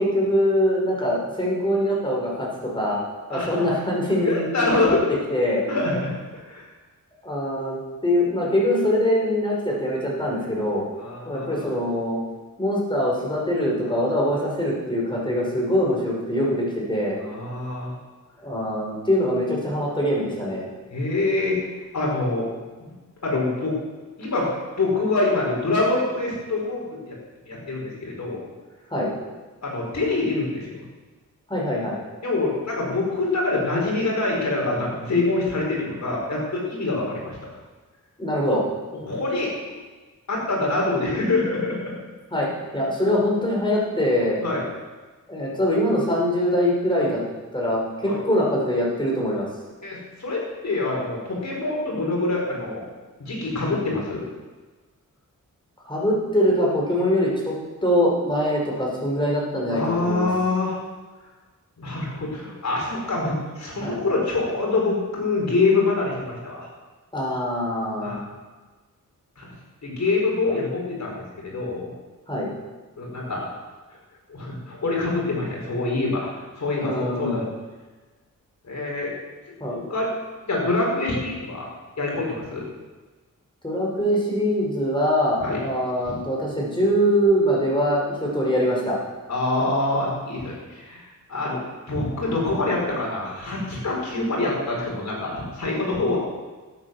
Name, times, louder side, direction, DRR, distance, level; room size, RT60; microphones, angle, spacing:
voice 1, 0.0-3.0 3.3-5.0 5.3-5.6 7.2-10.9 11.3-12.2 12.6-17.2 18.4-20.7 28.9-29.1 31.5-32.0 38.2-38.6 42.3-42.5 42.7-44.4 45.3-47.2 47.5-49.5 55.8-57.5 57.8-60.3 63.8-64.0 67.1-68.2 72.3-72.5 76.8-77.4 79.6-79.8 83.6-89.0, equal, 15° left, -3 dB, 5.6 m, -23 dB
voice 2, 3.3-3.7 4.3-5.2 5.7-6.6 7.6-7.7 11.0-11.7 17.2-17.9 20.9-21.6 21.9-22.5 22.8-22.9 23.2-23.7 24.2-24.5 24.8-27.2 27.5-28.4 29.6-30.8 32.2-37.5 39.1-39.5 40.3-41.9 44.4-44.7 48.1-48.2 49.8-52.8 53.2-54.2 59.7-60.8 61.8-66.7 68.0-68.2 69.4-69.5 69.8-71.9 73.0-73.5 74.3-76.3 76.6-77.5 78.6-79.1 79.7-80.1 80.5-81.7 82.0-82.6 85.4-85.6 86.0-86.2 89.3-91.6 91.9-96.2, left 2 dB, 55° left, -3 dB, 5.8 m, -25 dB
13.0 x 9.1 x 7.2 m, 1.3 s
cardioid pair, 80°, 33 cm